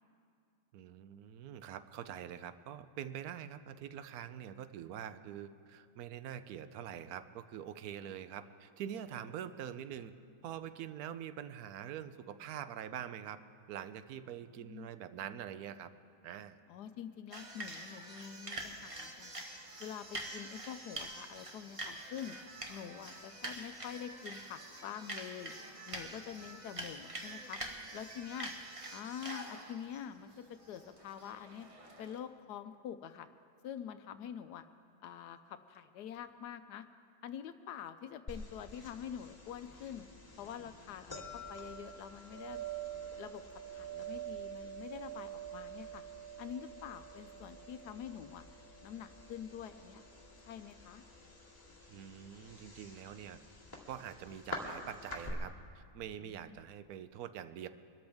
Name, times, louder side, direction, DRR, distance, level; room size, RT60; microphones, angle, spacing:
voice 1, 0.7-10.1 10.4-13.4 13.7-15.9 16.2-16.6 51.9-53.4 53.9-57.7, right 9 dB, 70° right, 12 dB, 1.0 m, -45 dB
voice 2, 14.6-14.9 16.7-19.3 19.8-22.4 22.7-25.5 25.9-27.6 27.9-28.5 28.9-31.7 32.0-33.3 33.6-34.7 35.0-36.9 37.2-40.1 40.4-42.7 43.2-46.0 46.4-48.4 48.8-50.0 50.4-51.0 56.2-56.6, left 9 dB, 75° left, 10 dB, 1.1 m, -46 dB
sound 1, 17.3-32.2, right 1 dB, 25° right, 1.0 m, -46 dB
sound 2, 38.3-55.3, right 3 dB, 10° left, 2.1 m, -47 dB
24.0 x 13.0 x 3.5 m, 2.5 s
omnidirectional pair, 1.9 m